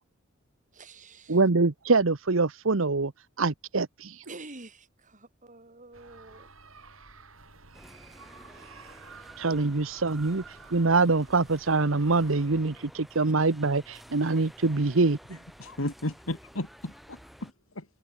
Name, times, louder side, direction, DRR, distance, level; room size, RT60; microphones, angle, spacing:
voice 1, 0.7-1.4 4.2-6.5, right 3 dB, 40° right, 6.3 m, -47 dB
voice 2, 1.3-3.1 3.4-4.2 9.4-10.4 10.7-15.2, right 3 dB, 70° right, 1.1 m, -24 dB
sound 1, 5.9-12.7, right 4 dB, 85° right, 7.9 m, -51 dB
sound 2, 7.7-17.5, equal, ahead, 5.4 m, -52 dB
voice 3, 15.6-17.9, left 1 dB, 90° left, 3.5 m, -34 dB
head